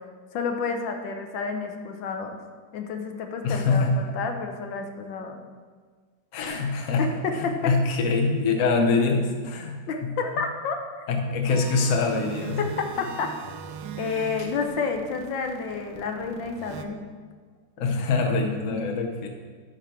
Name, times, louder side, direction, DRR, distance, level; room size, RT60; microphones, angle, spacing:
voice 1, 0.3-2.4 2.7-5.4 7.0-7.5 9.9-10.8 12.6-13.3 14.0-17.0, left 5 dB, 80° left, 4 dB, 1.4 m, -30 dB
voice 2, 3.4-4.0 6.3-10.1 11.1-12.6 17.8-19.3, left 4 dB, 50° left, 4 dB, 1.1 m, -24 dB
sound 1, 11.5-16.8, right 7 dB, 75° right, 1.2 m, -40 dB
12.0 x 5.0 x 4.5 m, 1.5 s
omnidirectional pair, 2.1 m